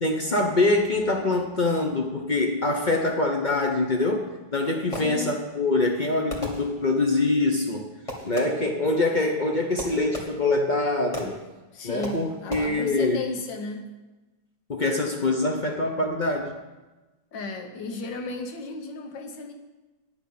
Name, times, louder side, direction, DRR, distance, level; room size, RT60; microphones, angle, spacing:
voice 1, 0.0-4.3 4.5-7.9 8.2-11.4 11.8-13.2 14.7-16.6, left 2 dB, 50° left, 2 dB, 0.5 m, -24 dB
Fireworks, 4.4-5.6 6.3-7.2 8.1-8.8 9.8-10.7 11.1-11.6 12.0-12.6, equal, 20° left, 1.8 m, -37 dB
voice 2, 4.9-5.4 11.7-13.9 17.3-19.5, left 3 dB, 70° left, 5 dB, 1.8 m, -34 dB
9.7 x 6.1 x 8.5 m, 1.2 s
omnidirectional pair, 2.1 m